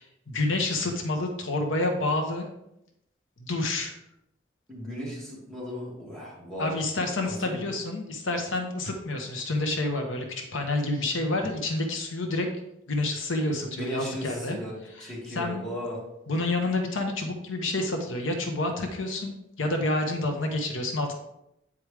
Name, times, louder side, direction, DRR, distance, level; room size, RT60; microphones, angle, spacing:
voice 1, 0.0-2.5 3.4-3.9 6.6-12.5 12.9-14.6 15.0-15.7 16.3-21.1, left 2 dB, 80° left, 3 dB, 1.0 m, -29 dB
voice 2, 4.7-6.7 7.3-7.6 13.6-14.7 15.0-16.0, equal, 5° left, -7 dB, 2.4 m, -36 dB
8.7 x 4.8 x 3.4 m, 0.83 s
head